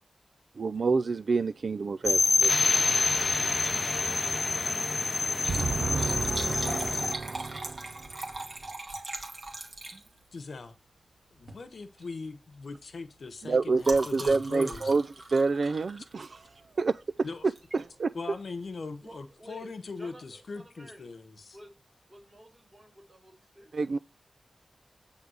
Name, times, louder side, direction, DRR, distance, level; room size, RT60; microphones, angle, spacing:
voice 1, 0.6-2.8 5.5-8.1 13.4-15.0 15.3-16.4 16.8-16.9 17.7-18.1 23.7-24.0, right 4 dB, 60° right, 0.3 m, -28 dB
sound 1, 2.0-7.1, left 3 dB, 40° left, 0.5 m, -27 dB
Liquid, 3.6-3.9 4.2-4.3 5.2-10.4 11.4-11.6 12.0-12.2 12.5-16.6 17.5-17.8 18.3-18.4 18.6-18.7, right 2 dB, 40° right, 2.0 m, -40 dB
voice 2, 10.3-10.8 11.3-14.9 17.2-17.5 18.1-21.6, left 4 dB, 65° left, 1.0 m, -40 dB
voice 3, 19.0-21.1 21.5-21.7 22.1-23.8, right 1 dB, 20° right, 3.7 m, -52 dB
9.4 x 3.5 x 6.3 m
wide cardioid pair, 125°, 0 cm